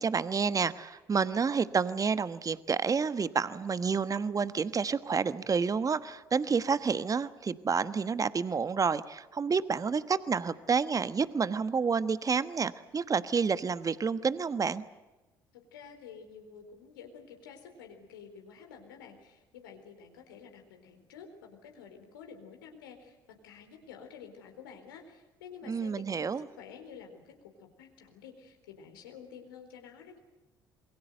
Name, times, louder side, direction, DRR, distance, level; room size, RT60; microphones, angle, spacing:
voice 1, 0.0-14.8 25.7-26.4, right 5 dB, 30° right, 14 dB, 1.2 m, -29 dB
voice 2, 15.5-30.2, left 6 dB, 80° left, 4 dB, 4.2 m, -50 dB
27.0 x 23.0 x 8.0 m, 1.1 s
figure-of-eight pair, 55°, 11 cm